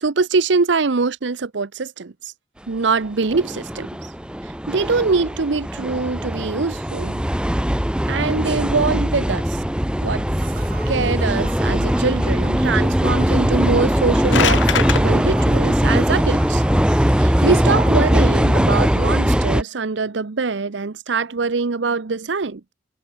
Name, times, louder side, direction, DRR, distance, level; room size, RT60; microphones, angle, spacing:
voice 1, 0.0-2.3 2.7-4.1 4.4-7.2 8.1-9.6 10.0-10.3 10.9-22.7, right 4 dB, 75° right, 0.7 m, -23 dB
sound 1, 3.2-19.6, equal, 5° right, 0.9 m, -20 dB
sound 2, 10.4-19.3, right 5 dB, 55° right, 2.6 m, -43 dB
sound 3, 13.9-15.0, left 8 dB, 80° left, 0.6 m, -22 dB
head